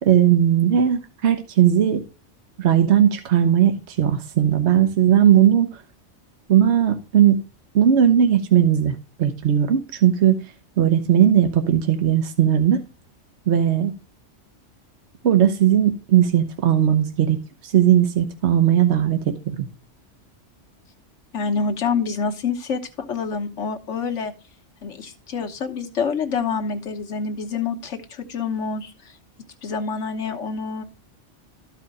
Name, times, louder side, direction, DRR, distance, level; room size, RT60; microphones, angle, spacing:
voice 1, 0.0-2.0 2.6-5.8 6.5-7.4 7.7-10.4 10.8-12.8 13.5-13.9 15.2-19.7, right 10 dB, 70° right, 1.2 m, -18 dB
voice 2, 21.3-24.3 24.8-29.2 29.6-30.8, left 5 dB, 75° left, 1.5 m, -27 dB
13.0 x 4.9 x 4.8 m
omnidirectional pair, 1.2 m